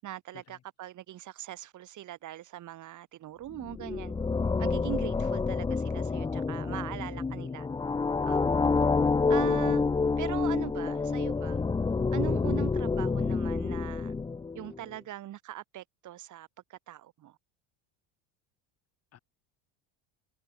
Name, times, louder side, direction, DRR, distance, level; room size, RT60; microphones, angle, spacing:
voice 1, 0.0-4.1 4.6-7.7 8.2-8.8 9.3-9.8 10.2-11.6 12.1-14.1 14.5-17.4, right 13 dB, 45° right, 6.4 m, -41 dB
sound 1, 3.5-14.8, left 4 dB, 10° left, 0.8 m, -28 dB
voice 2, 4.4-4.9 11.8-12.1 19.1-19.2, left 11 dB, 35° left, 2.7 m, -51 dB
supercardioid pair, 125°, 40 cm